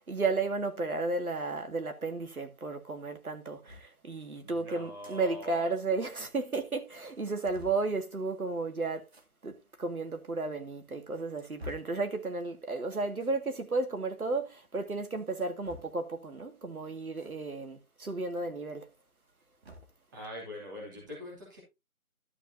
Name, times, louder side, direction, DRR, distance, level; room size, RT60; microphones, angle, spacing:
voice 1, 0.0-9.1 9.4-18.9, right 3 dB, 75° right, 2.2 m, -33 dB
sound 1, 3.7-3.9 4.8-5.2 5.5-5.6 5.9-6.0 6.5-6.6 7.0-7.9 9.0-9.3 10.1-10.2 10.9-12.0 13.1-13.4 15.2-16.1 17.1-17.3 17.7-17.8 19.1-20.0, left 3 dB, 45° right, 2.1 m, -50 dB
voice 2, 4.4-5.8 20.1-21.6, left 1 dB, 15° right, 2.6 m, -43 dB
12.0 x 7.6 x 2.8 m
figure-of-eight pair, 165°, 44 cm